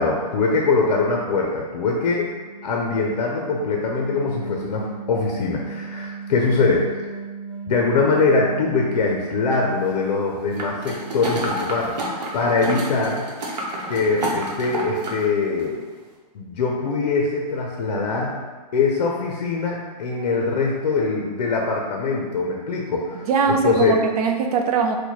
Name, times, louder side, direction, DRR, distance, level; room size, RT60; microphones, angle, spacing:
voice 1, 0.0-2.3 2.6-7.1 7.7-11.9 12.3-13.2 13.9-15.8 16.3-18.4 18.7-24.0, left 4 dB, 65° left, 0 dB, 0.5 m, -22 dB
sound 1, 1.7-11.8, right 5 dB, 35° right, 0.9 m, -37 dB
sound 2, 10.6-15.2 15.6-15.7, right 1 dB, 80° right, 0.9 m, -29 dB
voice 2, 23.1-24.9, right 5 dB, 65° right, 5 dB, 0.5 m, -21 dB
4.4 x 2.1 x 2.8 m, 1.4 s
hypercardioid pair, 180°, 21 cm